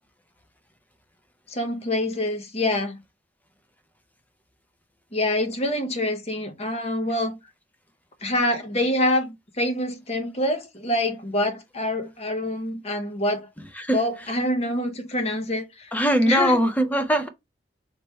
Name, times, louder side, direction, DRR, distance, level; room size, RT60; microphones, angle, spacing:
voice 1, 1.5-3.0 5.1-7.4 8.2-13.4 13.9-15.9 16.2-16.6, left 1 dB, 35° left, 0.9 m, -26 dB
voice 2, 15.9-17.3, equal, 10° left, 0.6 m, -21 dB
3.2 x 3.2 x 4.3 m
head